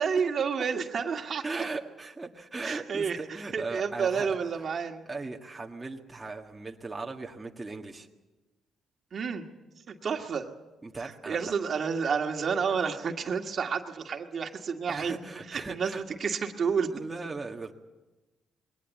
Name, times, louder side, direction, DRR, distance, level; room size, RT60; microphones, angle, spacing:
voice 1, 0.0-1.6 2.6-3.2 3.5-5.0 9.1-9.5 9.9-10.5 11.0-15.2 15.5-16.9, right 6 dB, 50° right, 4 dB, 1.9 m, -30 dB
voice 2, 1.4-4.7 5.1-8.1 10.8-11.5 14.9-16.0 16.9-17.7, right 3 dB, 20° right, 1 dB, 1.7 m, -38 dB
21.5 x 18.0 x 8.3 m, 1.1 s
cardioid pair, 90°, 0 cm